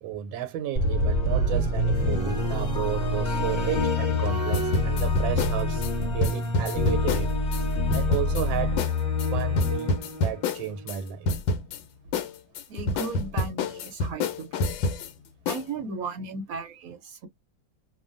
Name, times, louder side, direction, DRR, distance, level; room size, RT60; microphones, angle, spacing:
voice 1, 0.0-5.8 6.1-7.4 7.9-8.8 9.1-11.3, right 11 dB, 90° right, 1.4 m, -33 dB
sound 1, 0.8-10.9, left 2 dB, 30° left, 1.4 m, -26 dB
sound 2, 4.5-7.6 7.9-8.5 8.8-8.9 9.2-11.0 11.3-11.8 12.1-15.1 15.5-15.7, left 2 dB, 85° left, 1.4 m, -27 dB
voice 2, 12.7-14.7 15.5-17.3, right 4 dB, 65° right, 0.9 m, -36 dB
3.1 x 2.1 x 2.5 m
omnidirectional pair, 2.1 m